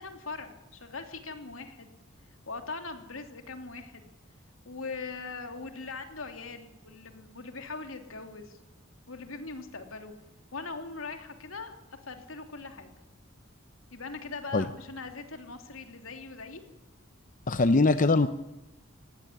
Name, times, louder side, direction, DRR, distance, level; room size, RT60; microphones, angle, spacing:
voice 1, 0.0-1.9 2.5-4.1 4.6-8.6 9.1-10.1 10.5-12.9 13.9-16.6, left 4 dB, 80° left, 6 dB, 3.1 m, -41 dB
voice 2, 17.5-18.3, left 3 dB, 40° left, 11 dB, 0.7 m, -22 dB
19.0 x 16.0 x 10.0 m, 0.98 s
head